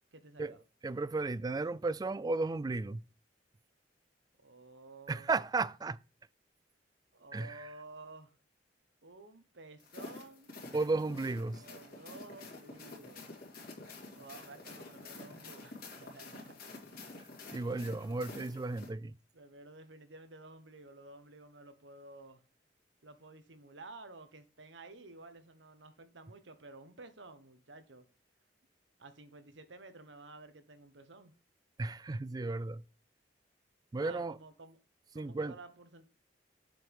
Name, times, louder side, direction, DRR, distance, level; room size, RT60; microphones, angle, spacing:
voice 1, 0.1-0.6 4.4-5.3 7.1-8.3 9.0-10.5 11.6-13.3 14.2-16.6 19.3-22.4 23.0-28.1 29.0-31.3 34.0-34.8 35.1-36.0, right 2 dB, 85° right, 1.2 m, -52 dB
voice 2, 0.8-3.0 5.1-6.0 7.3-7.7 10.7-11.6 17.5-19.2 31.8-32.8 33.9-34.4 35.1-35.5, right 3 dB, 20° right, 0.3 m, -34 dB
sound 1, 9.8-18.9, left 3 dB, 55° left, 2.6 m, -49 dB
7.6 x 5.4 x 4.7 m
head